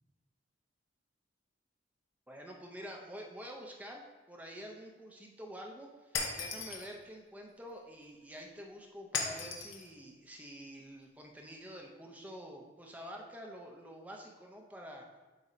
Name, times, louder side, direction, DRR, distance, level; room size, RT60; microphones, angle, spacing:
voice 1, 2.3-4.0 4.3-15.1, equal, 10° right, 0 dB, 0.6 m, -48 dB
Shatter, 6.1-6.9 9.1-9.9, left 5 dB, 85° left, 0.8 m, -36 dB
8.2 x 2.8 x 5.0 m, 1.2 s
head